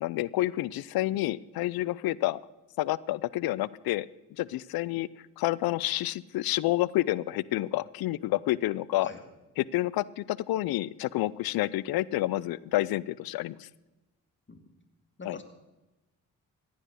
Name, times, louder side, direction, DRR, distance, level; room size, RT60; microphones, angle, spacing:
voice 1, 0.0-2.4 2.8-4.1 4.4-5.1 5.4-9.1 9.6-13.7 15.2-15.4, left 16 dB, 80° left, 22 dB, 0.6 m, -29 dB
voice 2, 9.0-9.2 14.5-14.6 15.2-15.4, left 3 dB, 30° left, 7 dB, 2.6 m, -42 dB
15.5 x 9.9 x 6.5 m, 1.1 s
supercardioid pair, 45°, 36 cm